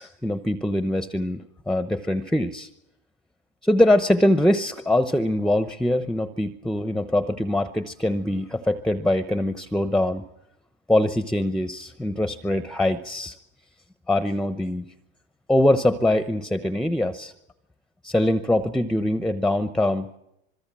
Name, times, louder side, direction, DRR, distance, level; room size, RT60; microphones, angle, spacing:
voice 1, 0.0-2.7 3.6-10.2 10.9-13.3 14.1-14.9 15.5-17.3 18.0-20.1, left 1 dB, ahead, 11 dB, 0.8 m, -23 dB
26.5 x 21.5 x 7.4 m, 0.84 s
supercardioid pair, 130°, 33 cm